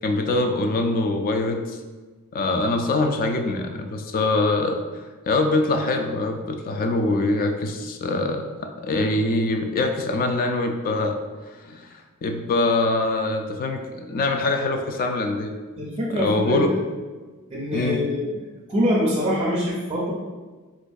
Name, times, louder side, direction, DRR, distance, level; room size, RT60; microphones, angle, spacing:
voice 1, 0.0-1.8 2.3-4.8 5.3-11.2 11.6-11.9 12.2-15.5 16.1-16.7 17.7-18.1, left 2 dB, 40° left, 5 dB, 0.3 m, -23 dB
voice 2, 15.8-16.7 17.5-18.3 18.7-20.1, equal, 25° right, -4 dB, 0.5 m, -24 dB
4.3 x 2.5 x 2.3 m, 1.3 s
head